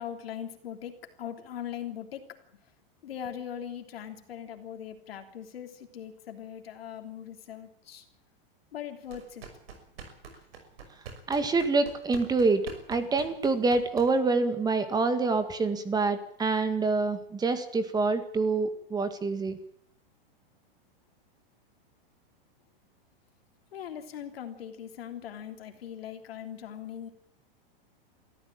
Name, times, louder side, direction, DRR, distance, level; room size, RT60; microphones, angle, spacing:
voice 1, 0.0-2.3 3.0-8.0 8.7-9.4 10.3-10.4 23.7-27.1, left 9 dB, 90° left, 6 dB, 3.4 m, -40 dB
sound 1, 9.0-14.4, right 5 dB, 90° right, 6.0 m, -46 dB
voice 2, 11.3-12.6 12.9-19.6, right 3 dB, 15° right, 10 dB, 1.9 m, -26 dB
22.5 x 14.5 x 8.9 m, 0.67 s
supercardioid pair, 145°, 29 cm